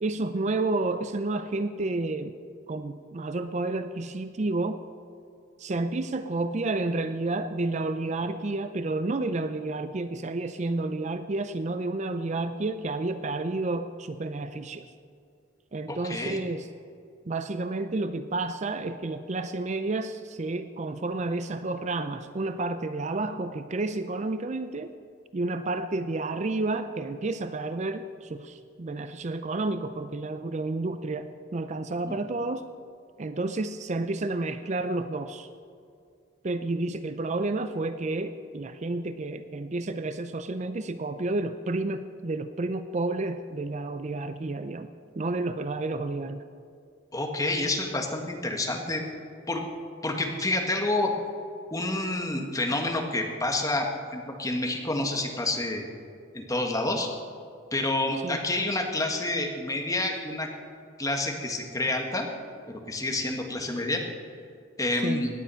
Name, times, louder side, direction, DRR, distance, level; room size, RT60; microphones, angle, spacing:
voice 1, 0.0-2.4 2.7-4.9 5.6-14.9 15.7-16.7 17.3-24.9 25.3-32.7 33.2-35.5 36.4-44.9 45.2-46.4 58.2-58.5 65.0-65.2, right 2 dB, 35° right, 10 dB, 0.5 m, -30 dB
voice 2, 15.9-16.4 32.1-32.2 47.1-49.0 49.5-49.6 50.0-51.1 51.7-55.8 56.3-57.1 57.7-60.5 61.0-62.3 62.7-64.0 64.8-65.3, left 2 dB, 20° left, 2 dB, 1.6 m, -28 dB
17.5 x 10.0 x 5.6 m, 2.4 s
head